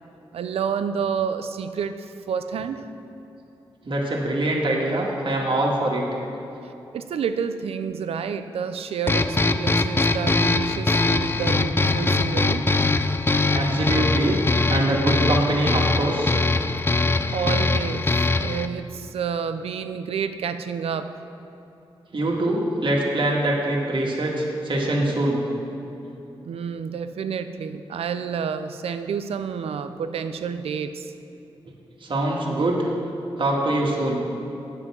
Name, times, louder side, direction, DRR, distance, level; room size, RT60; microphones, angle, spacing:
voice 1, 0.3-2.8 6.9-12.6 17.3-21.2 26.4-31.1, right 6 dB, 85° right, 10 dB, 0.4 m, -29 dB
voice 2, 3.8-6.0 13.5-14.4 14.7-16.3 22.1-25.4 32.0-32.8 33.4-34.2, right 1 dB, 60° right, -2 dB, 1.7 m, -23 dB
sound 1, 9.1-18.7, left 3 dB, 25° left, 0.4 m, -22 dB
8.1 x 5.6 x 7.3 m, 2.9 s
cardioid pair, 55°, 10 cm